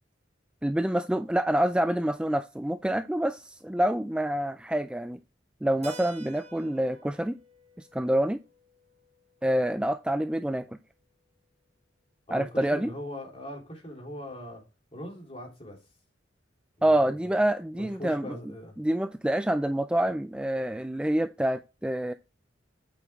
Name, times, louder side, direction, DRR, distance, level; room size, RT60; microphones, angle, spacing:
voice 1, 0.6-5.2 5.6-7.4 7.8-8.4 9.4-10.7 12.3-12.9 16.8-18.4 18.8-22.1, right 1 dB, 5° right, 0.3 m, -27 dB
Keyboard (musical), 5.8-10.3, right 2 dB, 35° right, 1.1 m, -51 dB
voice 2, 12.3-14.6 14.9-15.8 16.8-17.1 17.7-18.8, left 1 dB, 30° left, 3.5 m, -40 dB
8.6 x 6.2 x 3.5 m
head